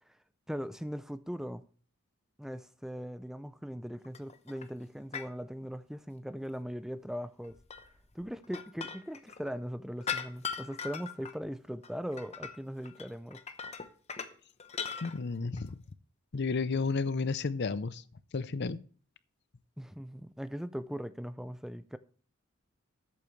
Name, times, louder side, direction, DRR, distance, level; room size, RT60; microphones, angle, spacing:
voice 1, 0.5-1.6 2.4-7.6 8.1-13.8 19.8-22.0, equal, ahead, 0.4 m, -40 dB
sound 1, 4.0-4.6 5.1-5.3 7.4-9.5 10.0-11.3 11.6-12.6 12.8-14.3 14.6-15.2 15.6-15.7, left 6 dB, 30° left, 0.9 m, -40 dB
voice 2, 15.0-15.8 16.3-18.0 18.3-18.8, left 4 dB, 50° left, 0.6 m, -32 dB
13.5 x 8.7 x 3.2 m
head